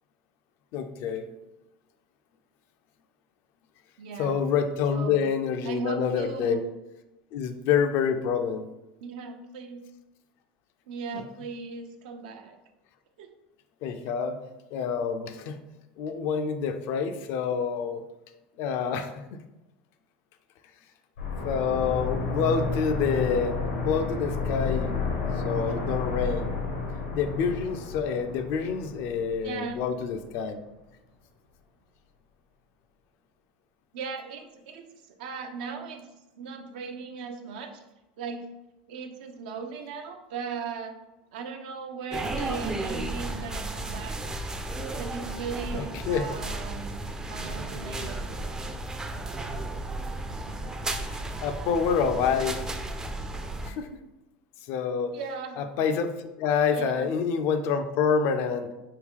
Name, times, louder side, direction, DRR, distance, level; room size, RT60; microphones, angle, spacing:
voice 1, 0.7-1.3 4.2-6.6 7.3-8.7 11.1-11.2 13.8-14.4 14.7-15.6 16.0-18.0 18.6-19.1 21.4-23.6 23.8-25.0 25.4-26.5 27.1-30.6 45.7-46.3 50.9-52.7 53.6-53.9 54.7-55.1 55.6-58.7, left 6 dB, 55° left, 8 dB, 0.4 m, -27 dB
voice 2, 4.0-4.4 4.9-5.2 5.6-6.6 9.0-9.8 10.9-12.6 13.2-13.3 29.4-29.9 33.9-34.8 35.2-36.1 36.4-37.8 38.2-38.5 38.9-41.0 41.3-44.2 44.9-46.8 47.3-48.2 55.1-55.6 56.7-57.1, right 5 dB, 70° right, 5 dB, 0.5 m, -37 dB
sound 1, 21.2-29.9 30.2-30.3, left 4 dB, 85° left, 0.8 m, -31 dB
sound 2, 42.1-53.7, right 2 dB, 15° right, 0.4 m, -34 dB
3.6 x 2.2 x 3.5 m, 0.99 s
hypercardioid pair, 90°, 5 cm